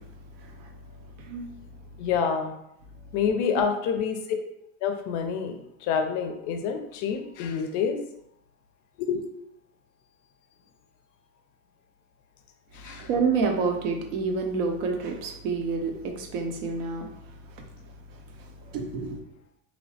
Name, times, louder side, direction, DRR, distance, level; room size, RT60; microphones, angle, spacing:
voice 1, 1.2-1.5 3.6-3.7 12.7-17.1 17.5-17.6 18.4-19.2, right 4 dB, 65° right, 0.7 m, -29 dB
voice 2, 2.0-2.5 3.1-4.4 4.8-8.0 9.0-9.4 12.7-13.1, left 6 dB, 45° left, 0.4 m, -28 dB
3.0 x 2.0 x 2.6 m
supercardioid pair, 110°, 40 cm